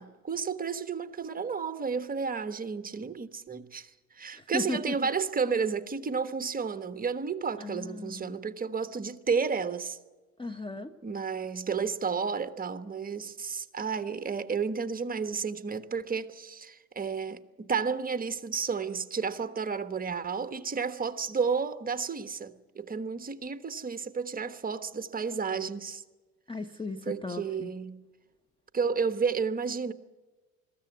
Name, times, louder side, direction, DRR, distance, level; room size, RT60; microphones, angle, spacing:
voice 1, 0.0-10.0 11.0-26.0 27.0-28.0 28.7-29.9, right 5 dB, 20° right, 1.3 m, -32 dB
voice 2, 4.3-4.9 7.6-8.4 10.4-10.9 26.5-27.7, left 3 dB, 10° left, 0.9 m, -36 dB
21.5 x 15.0 x 9.4 m
hypercardioid pair, 85°, 46 cm